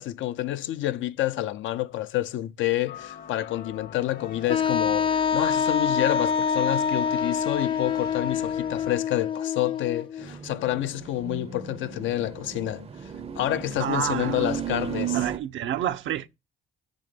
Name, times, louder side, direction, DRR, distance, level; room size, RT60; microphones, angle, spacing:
voice 1, 0.0-12.8 13.4-15.2, left 14 dB, 80° left, 0.5 m, -28 dB
sound 1, 2.9-8.9, left 7 dB, 50° left, 0.9 m, -44 dB
Wind instrument woodwind instrument, 4.5-10.3, left 6 dB, 25° left, 0.4 m, -26 dB
sound 2, 10.2-15.4, right 8 dB, 30° right, 0.5 m, -34 dB
voice 2, 13.8-14.5 15.1-16.3, right 10 dB, 75° right, 0.6 m, -29 dB
6.1 x 3.7 x 5.2 m
cardioid pair, 90°, 20 cm